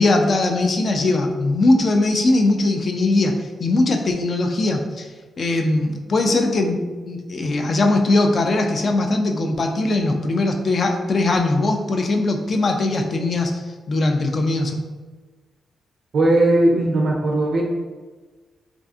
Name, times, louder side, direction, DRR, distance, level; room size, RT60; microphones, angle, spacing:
voice 1, 0.0-5.1 5.4-13.5 13.9-14.8, left 2 dB, 50° left, 4 dB, 0.3 m, -20 dB
voice 2, 16.1-17.6, right 1 dB, 60° right, -2 dB, 0.3 m, -18 dB
2.5 x 2.4 x 2.4 m, 1.3 s
cardioid pair, 85°, 0 cm